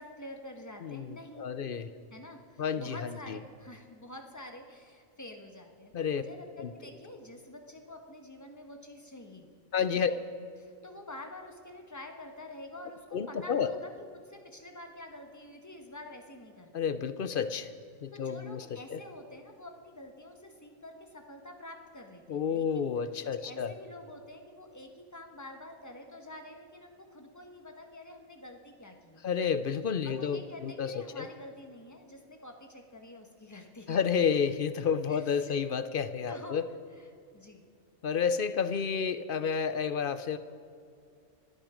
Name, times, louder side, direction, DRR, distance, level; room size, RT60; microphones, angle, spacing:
voice 1, 0.0-1.5 2.1-9.5 10.1-10.2 10.6-17.0 18.1-22.9 23.4-29.3 30.0-34.0 35.1-35.6 36.3-36.6 37.0-37.1 37.3-37.7, left 1 dB, 15° left, 4 dB, 1.4 m, -48 dB
voice 2, 0.8-1.9 2.6-3.4 5.9-6.2 6.6-6.7 9.7-10.1 13.1-13.7 16.7-17.7 18.0-19.0 22.3-23.7 29.2-31.3 33.9-36.7 38.0-40.4, left 6 dB, 55° left, 12 dB, 0.7 m, -30 dB
26.0 x 9.1 x 5.1 m, 2.3 s
omnidirectional pair, 1.2 m